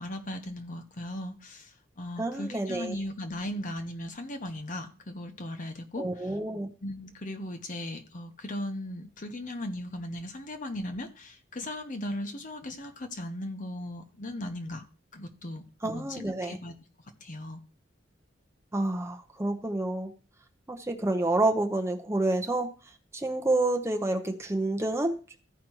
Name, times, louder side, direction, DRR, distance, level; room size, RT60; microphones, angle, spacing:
voice 1, 0.0-6.3 6.8-14.9 15.1-16.7 17.2-17.6, left 1 dB, 45° left, 1.0 m, -37 dB
voice 2, 2.2-3.0 6.0-6.7 15.8-16.6 18.7-20.1 20.7-22.7 23.1-25.4, right 2 dB, 15° right, 0.8 m, -28 dB
15.0 x 5.1 x 3.0 m
head